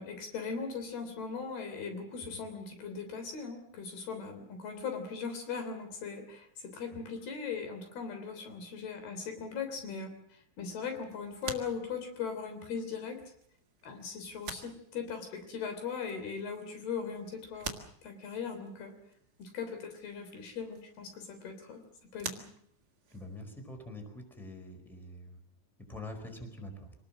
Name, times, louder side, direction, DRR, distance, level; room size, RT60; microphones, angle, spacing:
voice 1, 0.0-10.1 10.6-13.2 13.8-18.9 19.4-21.8 22.1-22.4, left 5 dB, 85° left, 7 dB, 5.3 m, -39 dB
sound 1, 10.7-23.5, right 5 dB, 35° right, 1.9 m, -49 dB
voice 2, 23.1-25.4 25.9-26.9, left 1 dB, ahead, 4 dB, 4.2 m, -45 dB
26.5 x 19.0 x 7.4 m, 0.68 s
omnidirectional pair, 4.4 m